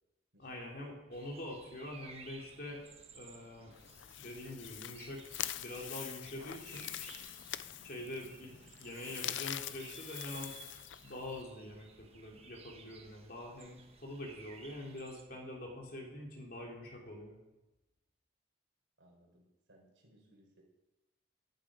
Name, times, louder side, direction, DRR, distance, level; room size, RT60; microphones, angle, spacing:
voice 1, 0.4-2.8 3.1-3.7 4.2-5.2 5.6-6.9 7.8-8.5 8.8-10.6 11.0-17.4, left 1 dB, 50° left, 0 dB, 3.1 m, -45 dB
sound 1, 1.1-15.2, right 5 dB, 30° right, 1.3 m, -57 dB
sound 2, 3.7-11.4, left 12 dB, 75° left, 0.5 m, -44 dB
voice 2, 8.2-8.6 19.0-20.6, right 1 dB, 85° right, 0 dB, 4.6 m, -63 dB
14.0 x 11.5 x 5.1 m, 1.0 s
head